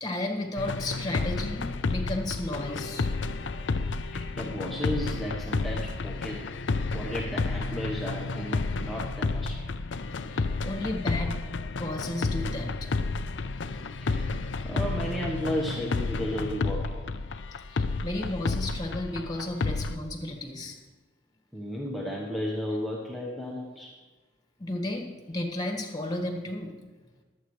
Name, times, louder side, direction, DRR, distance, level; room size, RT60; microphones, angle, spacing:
voice 1, 0.0-3.1 10.3-11.4 11.8-12.9 17.7-20.8 24.6-26.7, left 1 dB, 20° left, 3 dB, 1.6 m, -33 dB
sound 1, 0.6-20.0, left 3 dB, 75° left, 0.6 m, -31 dB
voice 2, 4.1-6.4 6.9-9.7 14.0-14.4 14.6-17.0 21.5-23.9, equal, ahead, -4 dB, 1.1 m, -34 dB
22.0 x 8.4 x 3.2 m, 1.3 s
head